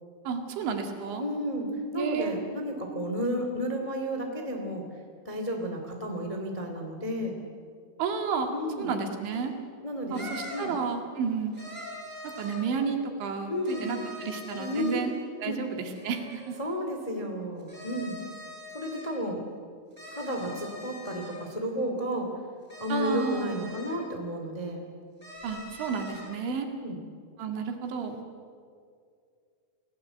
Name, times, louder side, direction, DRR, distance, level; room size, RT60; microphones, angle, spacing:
voice 1, 0.3-1.2 1.9-2.4 8.0-8.5 8.8-9.5 10.1-11.6 12.2-15.1 15.4-16.6 22.9-23.6 25.4-26.7 27.4-28.2, right 5 dB, 70° right, 4 dB, 4.2 m, -31 dB
voice 2, 1.2-1.7 1.9-4.8 5.2-7.4 8.5-8.9 9.8-10.2 10.5-10.8 13.5-13.9 14.6-15.0 15.4-15.6 16.6-18.2 18.7-19.4 20.1-22.3 22.8-24.8 26.8-27.0, equal, 30° left, 2 dB, 0.6 m, -32 dB
sound 1, 9.3-9.4 10.1-10.8 11.5-12.7 13.6-15.1 15.9-16.6 17.6-19.1 19.9-21.4 22.7-24.0 25.2-26.3, left 1 dB, 5° right, 7.2 m, -43 dB
28.5 x 17.5 x 8.1 m, 2.2 s
omnidirectional pair, 5.8 m